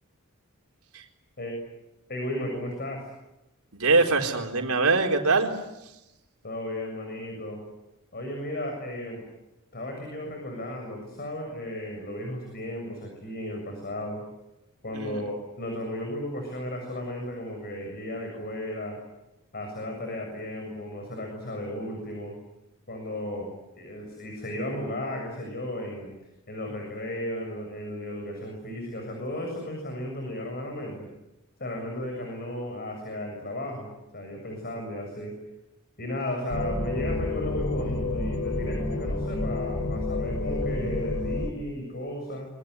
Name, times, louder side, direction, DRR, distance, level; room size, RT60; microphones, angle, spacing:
voice 1, 2.1-3.1 6.4-7.6 8.1-9.2 9.7-14.2 14.8-19.0 19.5-22.4 22.9-23.5 23.8-26.1 26.5-31.1 31.6-35.3 36.0-42.5, left 1 dB, 45° left, 2 dB, 7.1 m, -34 dB
voice 2, 3.7-5.5 14.9-15.2, right 3 dB, 75° right, 3 dB, 4.2 m, -23 dB
sound 1, 36.5-41.5, left 2 dB, 75° left, 4.2 m, -29 dB
26.0 x 23.5 x 9.6 m, 0.94 s
head